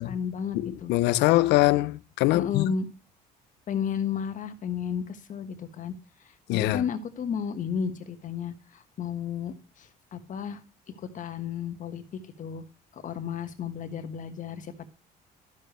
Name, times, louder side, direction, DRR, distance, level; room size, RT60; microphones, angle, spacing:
voice 1, 0.0-0.9 2.3-2.9 3.7-5.9 6.5-10.6 10.9-12.0 12.4-12.6 12.9-14.9, left 7 dB, 50° left, 1.4 m, -33 dB
voice 2, 0.5-2.7 6.5-6.8, left 18 dB, 85° left, 0.5 m, -23 dB
12.5 x 6.8 x 3.1 m
cardioid pair, 110°, 17 cm